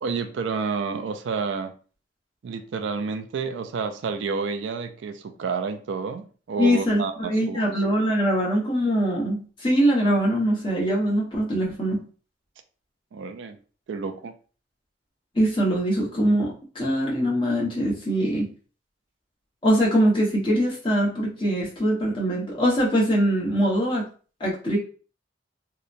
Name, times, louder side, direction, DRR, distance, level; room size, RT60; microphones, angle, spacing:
voice 1, 0.0-1.7 2.4-7.8 13.1-13.6 13.9-14.3, right 5 dB, 75° right, 0.3 m, -30 dB
voice 2, 6.6-12.0 15.3-18.5 19.6-24.1 24.4-24.8, equal, 25° left, 0.9 m, -22 dB
2.8 x 2.1 x 2.4 m
head